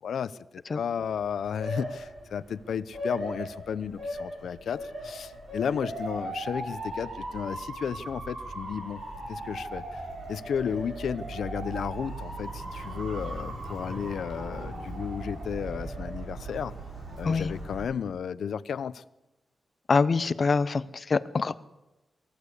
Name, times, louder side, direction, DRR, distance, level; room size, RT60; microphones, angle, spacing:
voice 1, 0.0-9.0 9.3-10.0 10.3-16.7 17.2-19.0, left 7 dB, 80° left, 0.7 m, -33 dB
Motor vehicle (road) / Siren, 1.0-17.8, right 1 dB, 55° right, 5.6 m, -38 dB
voice 2, 19.9-21.6, left 4 dB, 35° left, 0.7 m, -25 dB
23.5 x 15.0 x 8.4 m
wide cardioid pair, 175°, 0 cm